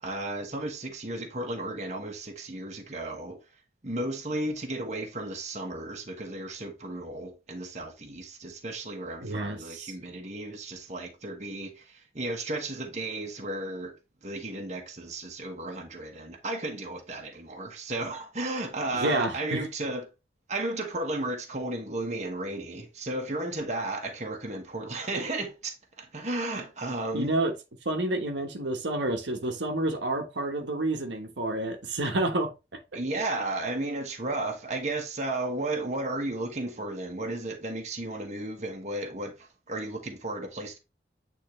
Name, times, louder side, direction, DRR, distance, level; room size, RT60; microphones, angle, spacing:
voice 1, 0.0-3.4 3.8-14.0 14.2-20.1 20.5-27.3 32.9-40.8, right 2 dB, 40° right, 1.3 m, -34 dB
voice 2, 9.2-9.9 18.9-19.6 27.1-27.5 27.8-32.5, right 2 dB, 85° right, 1.3 m, -29 dB
8.7 x 3.7 x 3.1 m
head